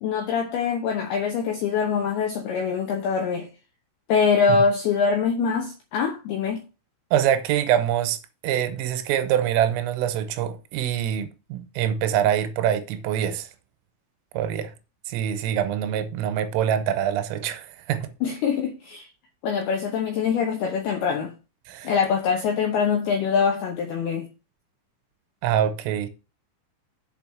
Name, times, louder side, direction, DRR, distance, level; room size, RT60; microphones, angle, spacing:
voice 1, 0.0-3.5 4.1-6.6 18.2-19.1 19.4-21.3 21.8-24.3, left 6 dB, 80° left, 2.3 m, -24 dB
voice 2, 7.1-8.2 8.4-13.5 14.3-14.7 15.1-18.1 21.7-21.9 25.4-26.1, right 10 dB, 85° right, 3.3 m, -24 dB
7.8 x 4.6 x 6.2 m
omnidirectional pair, 6.0 m